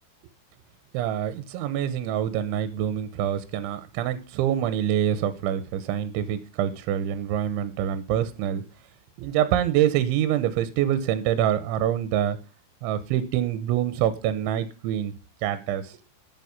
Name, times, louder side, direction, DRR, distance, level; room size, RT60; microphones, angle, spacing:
voice 1, 0.9-8.6 9.2-12.4 12.8-15.1 15.4-15.9, right 10 dB, 80° right, 13 dB, 3.3 m, -25 dB
12.5 x 9.2 x 5.3 m, 0.31 s
omnidirectional pair, 5.5 m